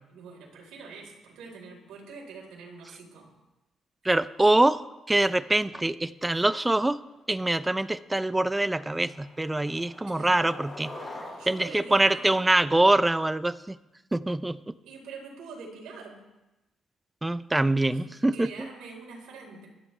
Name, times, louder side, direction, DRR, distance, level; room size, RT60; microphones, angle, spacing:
voice 1, 0.1-3.3 10.1-10.5 11.4-12.5 14.8-16.2 17.9-19.7, right 4 dB, 90° right, 0 dB, 4.3 m, -44 dB
voice 2, 4.0-4.8 5.1-7.0 7.3-10.9 11.5-13.7 14.1-14.6 17.2-18.5, right 2 dB, 15° right, 15 dB, 0.5 m, -24 dB
Skateboard, 7.9-8.1 8.5-13.1, left 1 dB, 25° left, 5.5 m, -45 dB
24.5 x 10.5 x 3.4 m, 0.99 s
cardioid pair, 90°, 0 cm